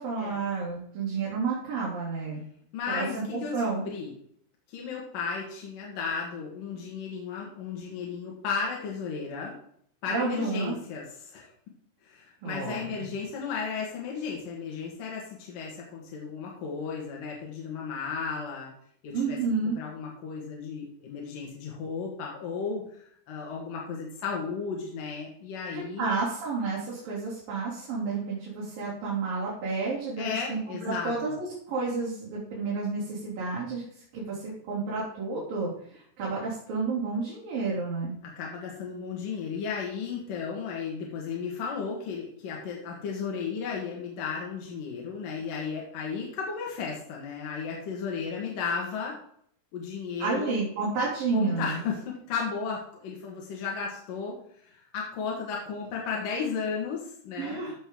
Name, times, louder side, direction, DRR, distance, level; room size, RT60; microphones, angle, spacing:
voice 1, 0.0-2.4 2.9-3.9 10.1-10.8 12.4-13.1 19.1-19.8 26.0-33.8 34.1-38.1 50.2-51.8 57.4-57.7, right 4 dB, 80° right, -7 dB, 4.7 m, -31 dB
voice 2, 2.7-4.1 4.7-9.6 10.0-11.5 12.0-18.7 19.0-19.4 19.6-22.8 23.3-26.1 30.2-31.4 38.4-49.2 49.7-50.6 51.3-54.4 54.6-57.6, left 5 dB, 75° left, -2 dB, 3.4 m, -34 dB
14.5 x 6.8 x 3.8 m, 0.65 s
omnidirectional pair, 3.9 m